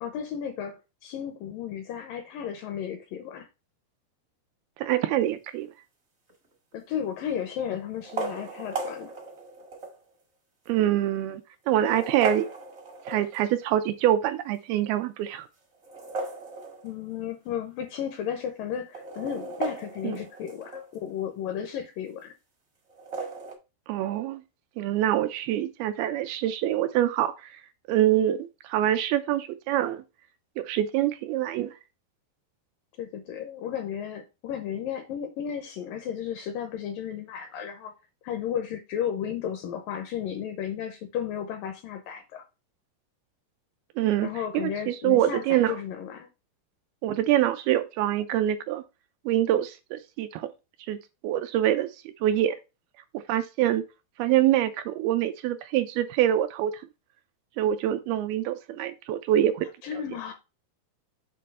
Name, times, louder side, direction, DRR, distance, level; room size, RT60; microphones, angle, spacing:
voice 1, 0.0-3.5 6.7-9.1 16.8-22.3 33.0-37.9 38.2-42.4 44.2-46.3 59.8-60.3, left 9 dB, 80° left, 2.1 m, -34 dB
voice 2, 4.8-5.7 10.7-11.4 11.7-12.5 13.1-15.5 20.0-20.2 23.9-24.4 24.8-27.3 27.9-30.0 30.6-31.7 44.0-44.3 44.5-45.8 47.0-48.8 49.3-50.5 50.9-51.0 51.2-51.9 52.2-52.6 53.3-53.8 54.2-56.7 57.6-59.7, right 12 dB, 80° right, 2.3 m, -25 dB
sound 1, 6.3-6.7 7.9-10.0 10.7-10.8 11.6-13.6 15.7-17.2 17.5-17.6 17.8-17.9 18.8-21.0 22.9-23.5, right 4 dB, 55° right, 0.7 m, -36 dB
7.7 x 3.0 x 5.3 m
omnidirectional pair, 4.6 m